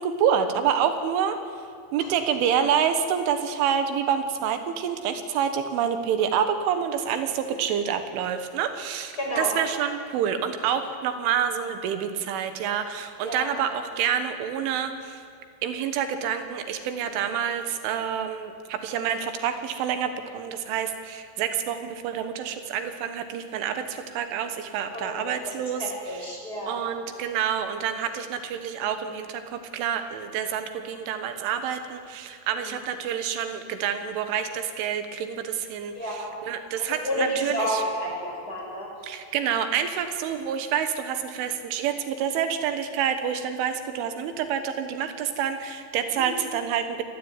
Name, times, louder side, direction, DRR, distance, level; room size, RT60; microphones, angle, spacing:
voice 1, 0.0-1.4 1.9-15.2 15.6-26.3 26.7-37.8 39.0-47.0, right 8 dB, 80° right, 8 dB, 3.9 m, -28 dB
voice 2, 9.2-9.5 13.2-13.5 24.9-25.5 25.8-26.8 32.5-32.7 35.9-36.3 36.8-38.9 46.1-46.2, equal, 20° left, -1 dB, 6.1 m, -31 dB
27.0 x 20.0 x 9.8 m, 2.4 s
omnidirectional pair, 5.5 m